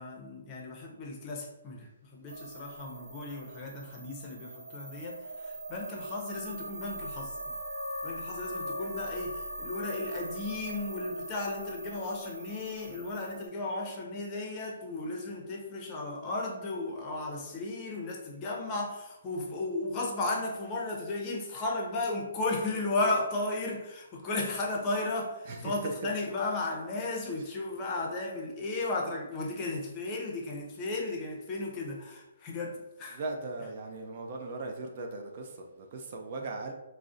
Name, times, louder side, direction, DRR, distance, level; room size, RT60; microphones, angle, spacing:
voice 1, 0.0-7.6 8.0-33.2, left 2 dB, 25° left, -1 dB, 0.6 m, -35 dB
sound 1, 2.3-13.5, right 1 dB, 80° right, 0.8 m, -41 dB
voice 2, 25.4-26.2 27.3-27.6 33.1-36.7, right 3 dB, 45° right, 2 dB, 0.3 m, -38 dB
2.5 x 2.0 x 3.6 m, 0.97 s
hypercardioid pair, 155°, 0 cm